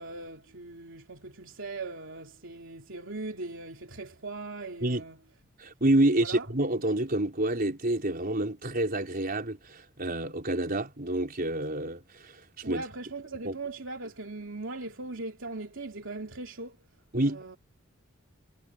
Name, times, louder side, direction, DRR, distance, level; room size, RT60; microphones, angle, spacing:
voice 1, 0.0-5.2 6.0-6.5 12.6-16.8 17.2-17.6, right 3 dB, 70° right, 3.3 m, -39 dB
voice 2, 5.6-12.8 13.4-13.6 17.1-17.4, right 1 dB, 45° right, 4.6 m, -28 dB
head